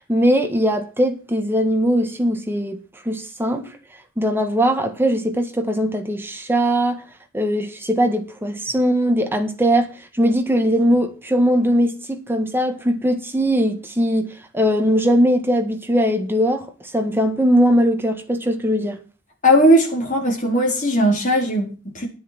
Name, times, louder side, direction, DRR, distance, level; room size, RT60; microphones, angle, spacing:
voice 1, 0.1-2.8 3.0-3.7 4.2-7.0 7.3-9.9 10.2-19.0, equal, 10° right, 1.6 m, -20 dB
voice 2, 19.4-22.1, equal, 35° left, 4.6 m, -18 dB
10.5 x 10.0 x 6.0 m
head